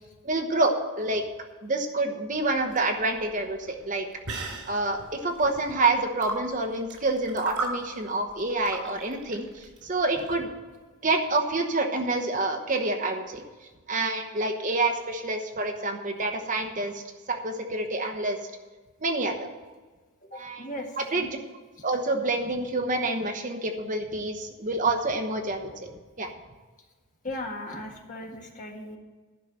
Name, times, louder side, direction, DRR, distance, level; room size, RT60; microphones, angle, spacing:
voice 1, 0.2-1.2 1.6-4.0 4.3-10.5 11.0-13.4 13.9-17.0 17.3-18.4 19.0-19.5 20.3-20.7 21.0-21.3 21.8-25.9 26.2-26.3, right 2 dB, 35° right, 4 dB, 1.0 m, -27 dB
sound 1, 2.4-10.4, right 3 dB, 90° right, 3.3 m, -38 dB
voice 2, 20.2-21.3 27.2-29.0, left 1 dB, 35° left, 1 dB, 1.6 m, -37 dB
11.5 x 5.6 x 8.8 m, 1.3 s
head